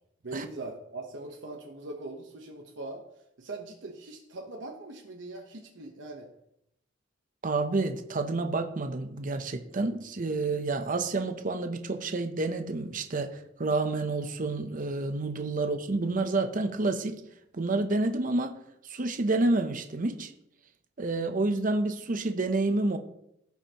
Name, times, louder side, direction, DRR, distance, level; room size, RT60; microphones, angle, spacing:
voice 1, 0.2-3.0 3.4-6.3, right 2 dB, 70° right, 1 dB, 1.0 m, -41 dB
voice 2, 7.4-17.2 17.5-18.5 18.8-20.3 21.0-23.0, right 2 dB, 45° right, 7 dB, 0.7 m, -29 dB
15.5 x 5.8 x 3.0 m, 0.79 s
head